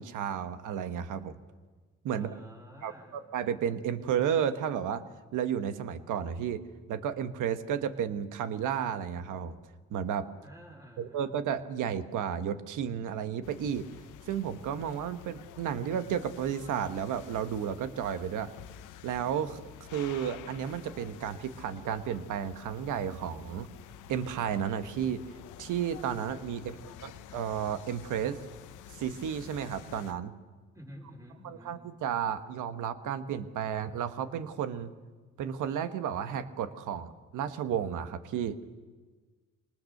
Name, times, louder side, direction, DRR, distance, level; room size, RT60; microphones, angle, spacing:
voice 1, 0.0-1.4 2.0-2.3 2.8-5.0 5.3-6.6 6.9-9.6 9.9-10.3 11.0-13.9 14.3-18.5 19.0-23.7 24.1-25.2 25.6-26.7 27.0-28.4 28.9-30.3 31.6-34.9 35.4-38.6, right 8 dB, 80° right, 10 dB, 1.4 m, -32 dB
voice 2, 2.1-3.3 10.4-11.4 26.5-27.2 30.7-31.8, equal, 10° right, 0 dB, 5.0 m, -51 dB
sound 1, 13.4-30.1, left 10 dB, 85° left, 0.8 m, -49 dB
25.0 x 19.5 x 6.6 m, 1.4 s
cardioid pair, 90°, 30 cm